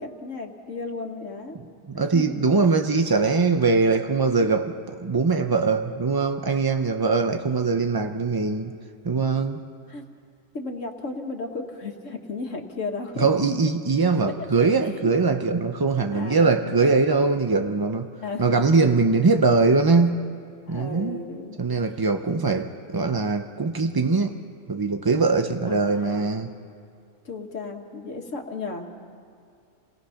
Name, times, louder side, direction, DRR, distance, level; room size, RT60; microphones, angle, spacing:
voice 1, 0.0-1.6 2.1-2.4 9.9-10.0 10.5-13.3 15.0-15.1 16.1-16.7 18.2-18.8 19.2-19.3 19.8-19.9 20.7-21.6 25.7-26.3 27.2-28.9, left 3 dB, 75° left, 3 dB, 1.9 m, -34 dB
voice 2, 1.9-8.7 9.0-9.6 13.2-18.1 18.4-20.2 20.7-21.2 21.6-24.3 24.7-26.5, right 4 dB, 35° right, 5 dB, 0.4 m, -22 dB
28.5 x 18.5 x 5.7 m, 2.4 s
omnidirectional pair, 1.3 m